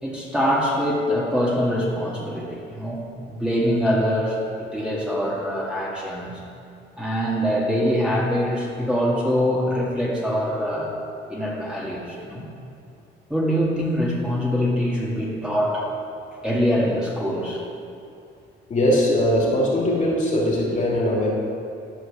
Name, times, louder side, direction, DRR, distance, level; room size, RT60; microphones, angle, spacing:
voice 1, 0.0-3.0 3.3-6.4 7.0-10.9 11.3-12.5 13.3-15.9 16.4-17.6, equal, 5° right, -5 dB, 1.9 m, -24 dB
voice 2, 18.7-21.3, left 1 dB, 40° left, -4 dB, 2.6 m, -20 dB
11.5 x 4.6 x 7.0 m, 2.6 s
cardioid pair, 90°, 20 cm